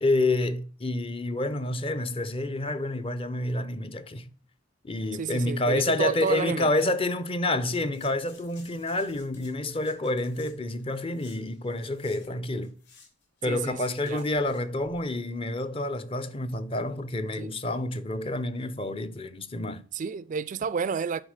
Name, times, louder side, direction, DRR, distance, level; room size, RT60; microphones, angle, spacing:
voice 1, 0.0-4.3 4.8-12.7 13.4-19.8, left 2 dB, 25° left, 0.6 m, -28 dB
voice 2, 5.1-6.7 13.4-14.2 17.4-17.5 19.9-21.2, right 6 dB, 40° right, 0.3 m, -31 dB
sound 1, 7.9-12.3 12.5-15.1 15.4-15.5, left 4 dB, 60° left, 3.6 m, -56 dB
10.5 x 4.3 x 6.5 m
head